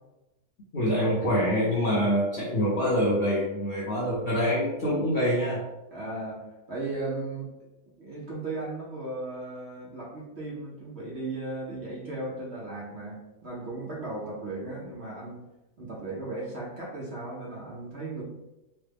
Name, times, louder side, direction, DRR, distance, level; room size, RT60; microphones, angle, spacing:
voice 1, 0.7-5.6, equal, 60° left, -6 dB, 0.6 m, -25 dB
voice 2, 5.9-7.7 8.0-15.4 15.8-18.2, right 2 dB, 60° right, -5 dB, 0.8 m, -36 dB
3.1 x 2.1 x 3.2 m, 0.98 s
omnidirectional pair, 1.7 m